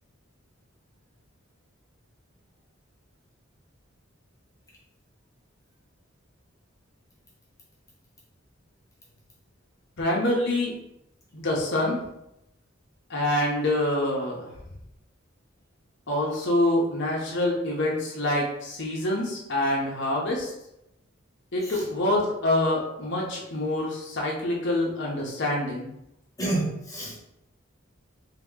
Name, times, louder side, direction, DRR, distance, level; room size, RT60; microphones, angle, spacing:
voice 1, 10.0-10.7 11.3-12.0 13.1-14.5 16.1-20.5 21.5-25.9, left 1 dB, 60° left, -3 dB, 0.9 m, -26 dB
voice 2, 26.4-27.2, right 2 dB, 15° left, -5 dB, 1.2 m, -29 dB
3.5 x 2.9 x 3.6 m, 0.84 s
head